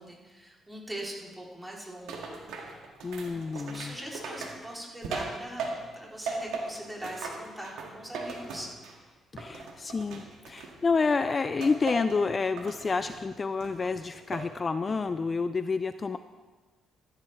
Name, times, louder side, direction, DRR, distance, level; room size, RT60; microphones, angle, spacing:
voice 1, 0.0-2.4 3.2-8.7, right 1 dB, 10° right, -3 dB, 3.0 m, -42 dB
sound 1, 2.1-6.0 6.3-9.1 9.4-11.0 11.6-12.2 12.6-13.2 13.6-14.5 14.9-15.3, right 4 dB, 90° right, 1.8 m, -38 dB
voice 2, 3.0-4.0 9.3-16.2, left 4 dB, 35° left, 11 dB, 0.4 m, -29 dB
14.0 x 12.0 x 3.2 m, 1.3 s
cardioid pair, 90°, 0 cm